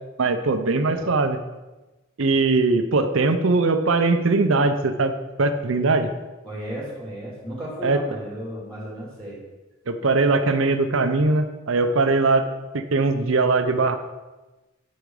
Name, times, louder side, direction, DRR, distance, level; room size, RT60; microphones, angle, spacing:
voice 1, 0.2-1.4 2.2-5.1 5.4-6.1 7.8-8.0 9.9-12.5 12.7-13.9, right 3 dB, 70° right, 8 dB, 0.6 m, -20 dB
voice 2, 0.8-1.1 6.4-9.4, equal, 5° left, -7 dB, 3.1 m, -34 dB
8.8 x 5.2 x 4.8 m, 1.1 s
head